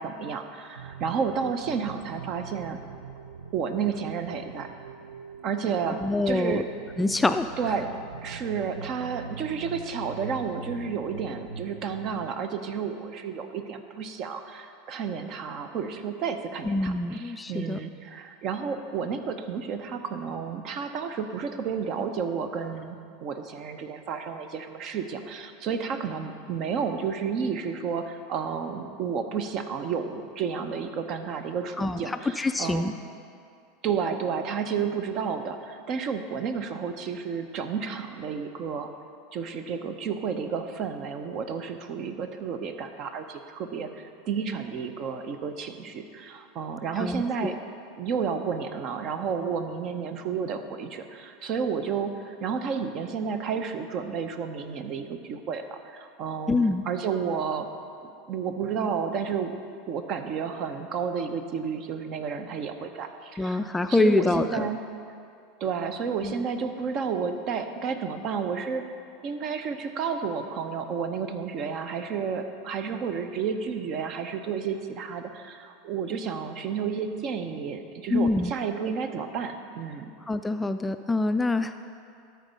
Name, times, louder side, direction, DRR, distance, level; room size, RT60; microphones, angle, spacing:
voice 1, 0.0-2.8 3.5-4.7 5.4-6.7 7.6-7.9 8.2-23.0 23.2-33.0 33.8-38.9 39.3-47.5 48.0-57.7 58.0-59.5 59.9-64.8 65.6-68.9 69.2-80.1, right 6 dB, 45° right, 8 dB, 0.7 m, -31 dB
sound 1, 0.8-12.3, right 6 dB, 80° right, 0.4 m, -43 dB
voice 2, 6.0-6.6 7.0-7.5 16.7-17.8 31.8-32.9 47.0-47.5 56.5-56.8 63.4-64.7 66.2-66.3 78.1-78.5 80.3-81.8, left 2 dB, 10° left, 9 dB, 0.3 m, -25 dB
12.5 x 4.6 x 5.3 m, 2.4 s
hypercardioid pair, 85°, 0 cm